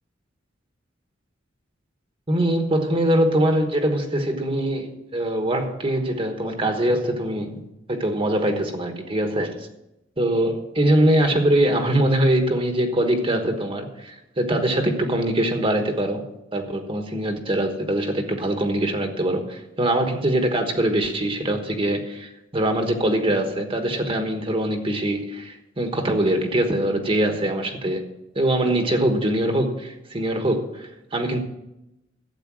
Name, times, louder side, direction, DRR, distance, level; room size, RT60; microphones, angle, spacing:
voice 1, 2.3-7.6 7.9-9.7 10.2-16.2 16.5-28.0 28.3-31.4, right 1 dB, 30° right, 5 dB, 1.3 m, -23 dB
12.5 x 8.3 x 6.1 m, 0.89 s
head